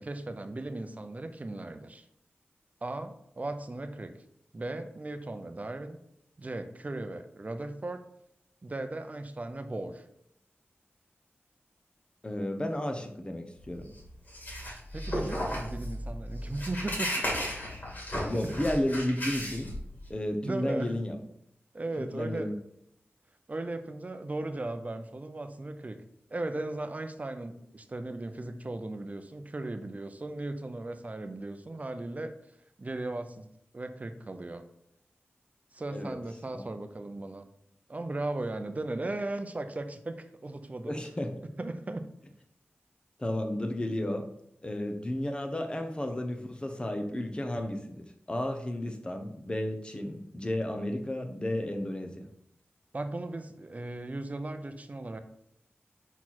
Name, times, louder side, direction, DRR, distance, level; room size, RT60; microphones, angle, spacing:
voice 1, 0.0-2.1 2.8-4.1 4.5-6.0 6.4-8.0 8.6-10.1 14.9-17.2 18.3-18.5 20.4-21.0 21.7-22.6 23.5-26.0 26.3-32.3 32.8-33.5 33.7-34.6 35.7-37.5 37.9-40.9 41.6-42.1 52.9-55.2, right 2 dB, 35° right, 8 dB, 0.6 m, -37 dB
voice 2, 12.2-13.9 18.3-19.7 20.1-21.2 22.0-22.5 35.9-36.2 36.5-36.6 40.9-41.3 43.2-44.3 44.6-52.3, left 1 dB, 25° left, 4 dB, 0.9 m, -32 dB
sound 1, 13.6-20.1, equal, 50° left, 2.3 m, -35 dB
5.9 x 4.4 x 4.3 m, 0.74 s
wide cardioid pair, 85°, 4 cm